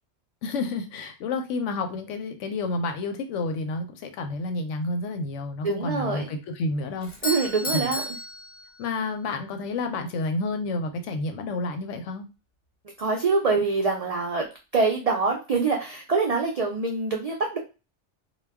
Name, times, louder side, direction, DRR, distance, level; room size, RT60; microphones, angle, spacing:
voice 1, 0.4-7.1 7.7-7.9 8.8-12.3, left 3 dB, 90° left, 6 dB, 0.9 m, -30 dB
voice 2, 5.6-6.2 7.2-8.0 13.0-14.5 14.7-17.6, right 4 dB, 80° right, 1 dB, 0.3 m, -25 dB
Doorbell, 7.0-9.2, left 1 dB, 45° left, 0.7 m, -33 dB
2.2 x 2.1 x 3.4 m, 0.30 s
omnidirectional pair, 1.2 m